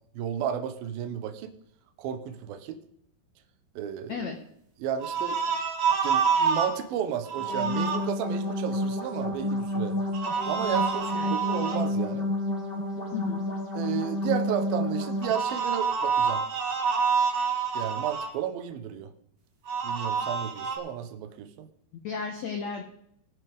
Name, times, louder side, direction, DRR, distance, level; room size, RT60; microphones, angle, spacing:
voice 1, 0.1-1.5 2.0-2.8 3.8-4.2 4.8-5.4 6.0-10.0 10.5-12.3 13.8-16.4 17.7-19.1 19.8-21.7, right 9 dB, 75° right, 7 dB, 2.6 m, -33 dB
sound 1, 5.0-6.7 7.2-8.0 10.1-11.8 15.2-18.3 19.7-20.8, right 6 dB, 45° right, 2.2 m, -27 dB
sound 2, 7.3-15.3, left 1 dB, 20° left, 2.0 m, -30 dB
voice 2, 13.1-13.4 21.9-22.8, left 6 dB, 80° left, 4 dB, 1.5 m, -33 dB
19.0 x 9.1 x 3.6 m, 0.73 s
omnidirectional pair, 4.7 m